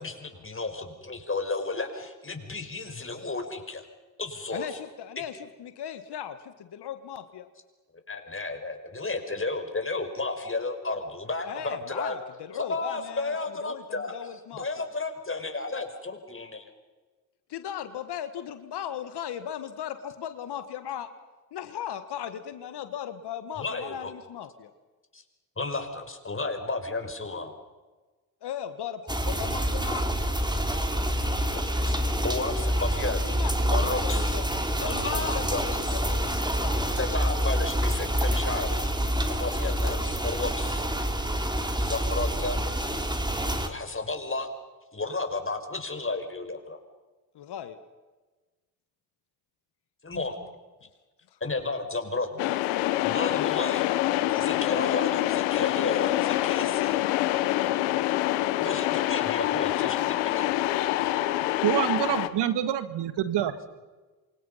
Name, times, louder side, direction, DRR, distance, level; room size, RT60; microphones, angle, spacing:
voice 1, 0.0-3.8 4.2-4.8 5.2-5.3 8.1-12.2 12.5-16.6 23.6-24.1 25.1-25.2 25.6-27.5 31.5-31.9 32.2-33.2 33.7-34.4 34.8-35.8 37.0-40.9 41.8-42.9 43.7-44.5 44.9-46.8 50.0-50.4 51.4-52.5 53.0-53.8 54.3-57.0 58.6-60.6, left 3 dB, 30° left, 6 dB, 5.7 m, -33 dB
voice 2, 4.5-7.5 11.4-13.4 13.6-14.9 17.5-21.1 21.5-24.7 28.4-30.1 33.3-34.4 34.8-37.2 39.6-39.7 47.4-47.8 51.3-51.4, left 9 dB, 65° left, 10 dB, 1.7 m, -37 dB
sound 1, 29.1-43.7, equal, 10° right, 3.8 m, -27 dB
sound 2, 52.4-62.3, left 15 dB, 85° left, 1.2 m, -26 dB
voice 3, 61.6-63.6, right 11 dB, 70° right, 12 dB, 1.8 m, -26 dB
27.5 x 26.5 x 5.8 m, 1.2 s
hypercardioid pair, 45°, 43 cm